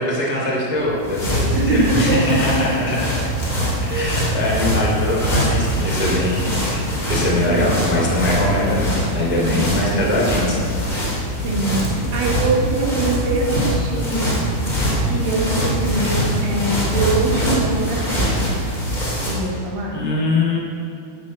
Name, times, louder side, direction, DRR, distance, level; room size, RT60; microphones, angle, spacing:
voice 1, 0.0-3.0 3.8-6.7 7.1-10.7 19.9-20.6, left 2 dB, 5° right, -4 dB, 1.8 m, -22 dB
sound 1, 0.8-19.5, equal, 15° left, 2.3 m, -23 dB
voice 2, 1.5-2.8 3.9-4.2 7.5-7.7 9.4-9.9 11.4-14.3 15.0-18.6 19.3-20.0, right 3 dB, 60° right, -2 dB, 3.7 m, -23 dB
12.5 x 7.4 x 8.7 m, 2.5 s
omnidirectional pair, 4.7 m